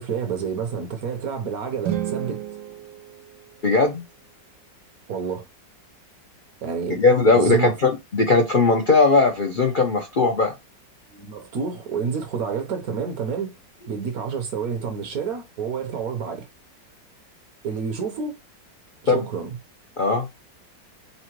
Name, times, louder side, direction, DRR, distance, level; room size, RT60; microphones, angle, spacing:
voice 1, 0.0-2.4 5.1-5.4 6.6-7.0 7.3-7.8 11.1-13.5 13.9-16.5 17.6-18.4 19.0-19.6, right 6 dB, 60° right, 1.2 m, -29 dB
sound 1, 1.8-4.0, right 12 dB, 90° right, 1.4 m, -32 dB
voice 2, 3.6-4.0 7.0-10.5 19.1-19.2 20.0-20.3, left 3 dB, 70° left, 0.4 m, -18 dB
5.6 x 2.2 x 2.9 m
omnidirectional pair, 1.9 m